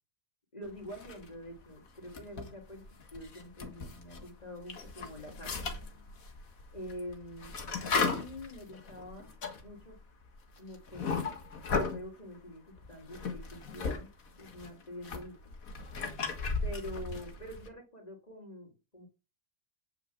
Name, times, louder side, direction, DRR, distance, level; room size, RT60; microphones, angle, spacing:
voice 1, 0.5-2.8 3.1-5.8 6.7-7.6 8.1-9.3 9.6-9.9 10.6-11.3 11.6-14.1 14.4-15.3 16.6-19.1, equal, 25° left, 1 dB, 3.2 m, -45 dB
sound 1, 0.9-1.6 2.0-4.3 4.6-12.1 12.8-14.0 14.3-17.7, left 4 dB, 60° left, 1.9 m, -36 dB
9.4 x 5.7 x 7.2 m, 0.30 s
omnidirectional pair, 1.6 m